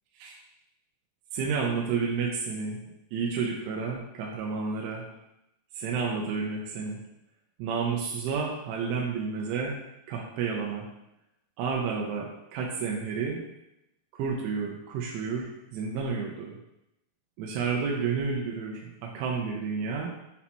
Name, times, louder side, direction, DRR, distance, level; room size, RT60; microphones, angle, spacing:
voice 1, 1.3-2.8 3.1-5.0 5.7-7.0 7.6-9.8 10.1-10.9 11.6-13.4 14.1-16.6 17.4-20.1, right 5 dB, 90° right, -1 dB, 3.1 m, -31 dB
8.2 x 4.3 x 2.9 m, 0.87 s
omnidirectional pair, 5.5 m